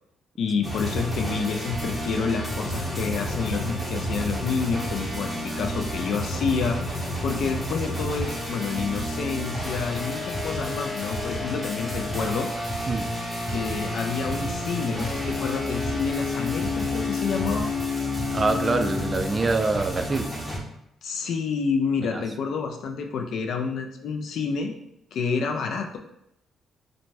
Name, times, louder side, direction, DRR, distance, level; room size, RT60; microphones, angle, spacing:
voice 1, 0.4-6.9 7.2-12.8 13.5-17.7 21.0-24.7 25.1-26.0, left 5 dB, 70° left, 3 dB, 0.3 m, -29 dB
sound 1, 0.6-20.6, left 1 dB, 5° left, 0.7 m, -30 dB
voice 2, 18.3-20.3 22.1-22.2, right 3 dB, 30° right, 6 dB, 0.3 m, -25 dB
2.5 x 2.1 x 3.2 m, 0.80 s
cardioid pair, 90°, 0 cm